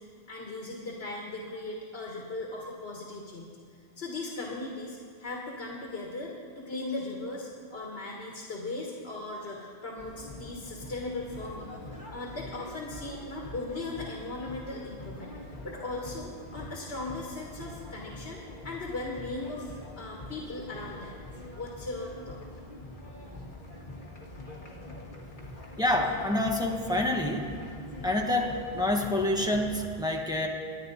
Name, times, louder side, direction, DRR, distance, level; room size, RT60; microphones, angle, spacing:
voice 1, 0.0-3.5 4.0-11.8 12.1-21.2 21.5-22.4, left 2 dB, 80° left, -1 dB, 1.8 m, -38 dB
sound 1, 10.0-29.9, left 1 dB, 50° left, 1.9 m, -44 dB
voice 2, 25.8-27.5 28.0-30.5, left 1 dB, 5° right, 1 dB, 1.3 m, -27 dB
24.0 x 10.0 x 4.0 m, 2.1 s
omnidirectional pair, 1.0 m